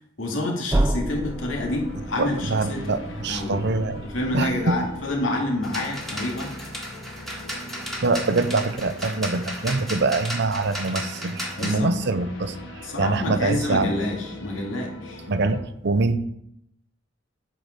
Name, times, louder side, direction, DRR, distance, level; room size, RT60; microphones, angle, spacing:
voice 1, 0.2-2.8 3.2-3.6 4.1-6.5 11.6-11.9 12.4-12.5 12.8-15.2, left 1 dB, 85° left, 0 dB, 2.2 m, -28 dB
sound 1, 0.7-5.4, right 1 dB, 15° right, 0.4 m, -30 dB
sound 2, 1.1-15.6, left 1 dB, 70° left, 1.5 m, -42 dB
voice 2, 2.2-4.0 4.3-4.8 8.0-13.9 15.3-16.2, right 3 dB, 60° right, 11 dB, 0.7 m, -24 dB
sound 3, 5.6-11.8, equal, ahead, 1.6 m, -34 dB
9.0 x 5.0 x 6.5 m, 0.78 s
head